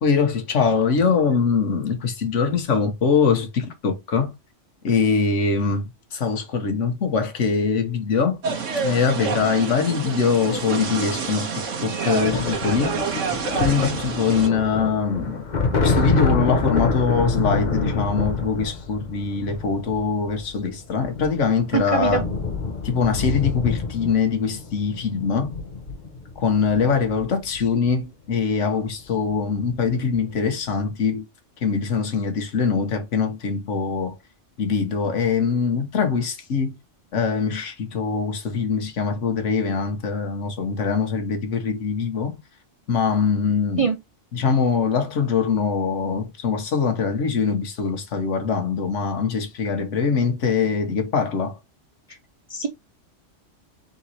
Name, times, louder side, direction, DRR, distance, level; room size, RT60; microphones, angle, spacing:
voice 1, 0.0-4.3 4.8-8.4 8.8-13.2 13.5-15.4 15.8-22.2 22.8-25.6 26.4-31.2 31.6-34.2 34.6-36.7 37.1-42.3 42.9-43.9 44.3-51.6, left 5 dB, 75° left, 1.4 m, -23 dB
sound 1, 8.4-14.5, right 5 dB, 85° right, 1.3 m, -28 dB
sound 2, 12.2-27.9 29.1-29.3 29.6-30.3, left 4 dB, 40° left, 0.9 m, -27 dB
voice 2, 21.7-22.2 43.8-44.0 52.5-52.7, right 6 dB, 45° right, 0.4 m, -22 dB
3.8 x 3.0 x 4.0 m
omnidirectional pair, 1.3 m